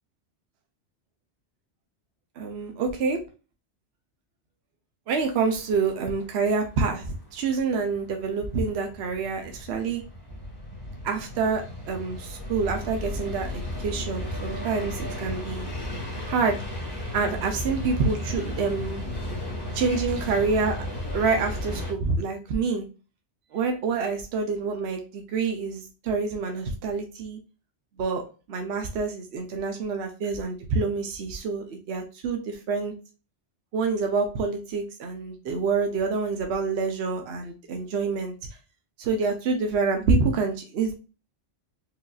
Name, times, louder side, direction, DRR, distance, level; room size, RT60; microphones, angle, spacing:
voice 1, 2.4-3.2 5.1-10.0 11.0-15.7 16.3-16.6 17.1-19.0 19.7-20.8 21.1-22.9 23.5-27.4 28.0-28.2 28.5-32.9 33.7-38.3 39.0-40.9, right 4 dB, 70° right, 4 dB, 0.9 m, -27 dB
sound 1, 5.1-21.9, left 1 dB, 20° left, 1.2 m, -35 dB
4.7 x 2.6 x 2.3 m, 0.33 s
omnidirectional pair, 1.2 m